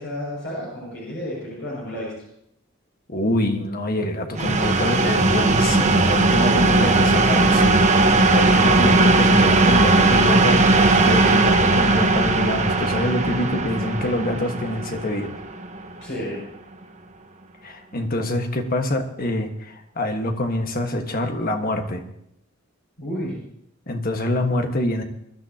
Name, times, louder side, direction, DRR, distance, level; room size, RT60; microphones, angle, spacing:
voice 1, 0.0-2.1 6.4-6.6 16.0-16.4 23.0-23.4, left 1 dB, 65° left, -5 dB, 6.3 m, -31 dB
voice 2, 3.1-7.8 8.3-15.4 17.6-22.0 23.9-25.0, left 1 dB, 45° left, 4 dB, 1.6 m, -25 dB
sound 1, 4.4-16.0, right 2 dB, 35° right, 1.2 m, -18 dB
23.0 x 13.0 x 2.9 m, 0.73 s
head